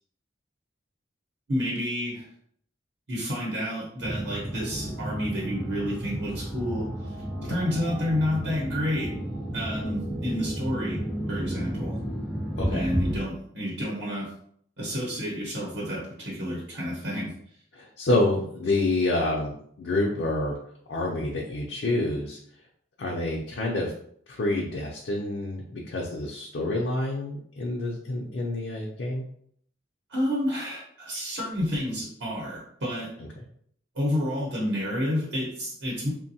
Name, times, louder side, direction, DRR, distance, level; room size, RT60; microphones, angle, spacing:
voice 1, 1.5-2.3 3.1-6.9 7.4-9.1 9.5-11.0 11.3-12.0 12.7-14.3 14.8-17.3 30.1-33.1 33.9-36.1, equal, 75° right, -5 dB, 0.9 m, -29 dB
sound 1, 4.0-13.2, equal, ahead, 0.5 m, -32 dB
voice 2, 17.7-20.6 20.9-22.4 23.0-23.9 24.3-29.2, left 2 dB, 70° left, -3 dB, 0.5 m, -28 dB
2.9 x 2.2 x 2.7 m, 0.65 s
head